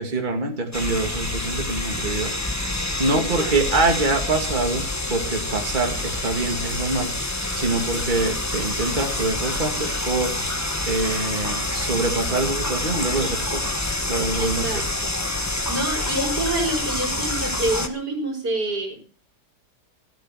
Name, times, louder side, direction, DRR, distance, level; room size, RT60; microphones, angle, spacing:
voice 1, 0.0-2.3 3.0-10.3 10.9-13.7 14.1-14.7, right 3 dB, 30° right, 3 dB, 2.1 m, -25 dB
sound 1, 0.7-17.9, left 2 dB, 10° left, 1.0 m, -27 dB
voice 2, 3.1-3.6 14.4-15.1 15.4-19.0, right 2 dB, 85° right, 2 dB, 4.5 m, -27 dB
15.0 x 9.1 x 6.2 m, 0.42 s
omnidirectional pair, 1.7 m